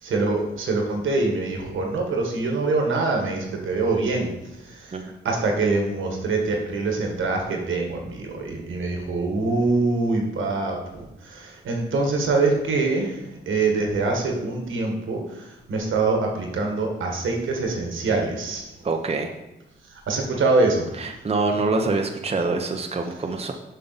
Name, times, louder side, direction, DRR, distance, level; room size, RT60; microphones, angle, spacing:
voice 1, 0.0-4.3 4.6-18.7 19.9-20.9, right 3 dB, 80° right, 1 dB, 1.4 m, -24 dB
voice 2, 18.8-19.4 21.0-23.5, right 3 dB, 30° right, 3 dB, 0.8 m, -25 dB
6.9 x 5.6 x 4.1 m, 0.94 s
cardioid pair, 60°, 20 cm